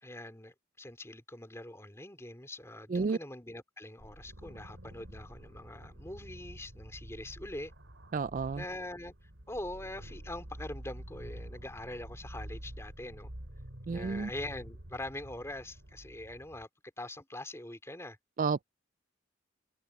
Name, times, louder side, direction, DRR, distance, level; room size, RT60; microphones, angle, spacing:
voice 1, 0.0-7.7 8.5-9.1 9.5-13.3 13.9-16.7 17.0-18.2, left 1 dB, 15° left, 3.9 m, -43 dB
sound 1, 4.0-16.7, right 1 dB, 80° right, 2.8 m, -48 dB
voice 2, 8.1-8.6 13.9-14.3 18.4-18.6, right 4 dB, 40° right, 0.3 m, -31 dB
open air
head